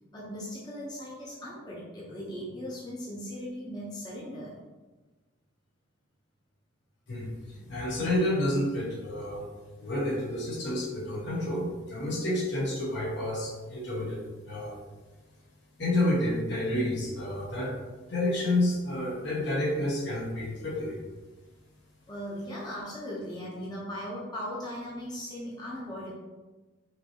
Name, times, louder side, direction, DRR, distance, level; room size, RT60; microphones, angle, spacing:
voice 1, 0.1-4.6 22.1-26.1, equal, 20° left, -7 dB, 0.9 m, -38 dB
voice 2, 7.1-9.5 9.8-14.8 15.8-17.7 18.0-21.0, left 1 dB, 55° left, -3 dB, 1.2 m, -29 dB
5.9 x 2.9 x 3.0 m, 1.2 s
head